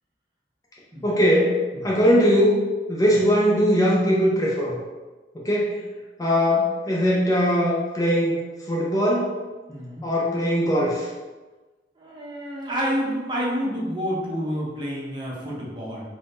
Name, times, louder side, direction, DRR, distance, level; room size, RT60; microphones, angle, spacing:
voice 1, 1.0-4.8 5.3-5.8 6.2-8.4 8.6-9.4 10.0-11.1, equal, 20° left, -5 dB, 0.5 m, -21 dB
voice 2, 9.7-10.1 12.0-16.1, equal, 25° right, -4 dB, 0.6 m, -29 dB
2.6 x 2.1 x 3.4 m, 1.2 s
head